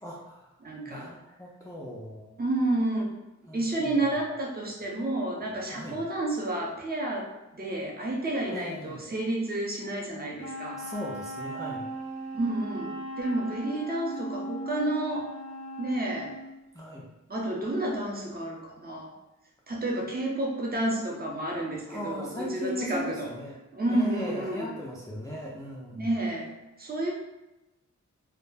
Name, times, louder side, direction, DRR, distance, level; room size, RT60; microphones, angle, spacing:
voice 1, 0.0-0.5 0.9-2.4 3.5-3.9 5.7-6.0 8.5-9.1 10.7-11.9 16.7-17.1 21.9-23.6 23.9-26.1, left 1 dB, 10° left, -5 dB, 0.3 m, -38 dB
voice 2, 0.6-1.1 2.4-3.0 3.5-10.8 12.3-15.3 15.8-16.3 17.3-19.1 19.7-23.3 23.7-24.7 25.9-26.5 26.8-27.1, right 1 dB, 30° right, -2 dB, 0.6 m, -30 dB
Wind instrument woodwind instrument, 10.4-16.5, right 1 dB, 90° right, 0.8 m, -38 dB
2.2 x 2.0 x 3.2 m, 0.97 s
wide cardioid pair, 100°, 30 cm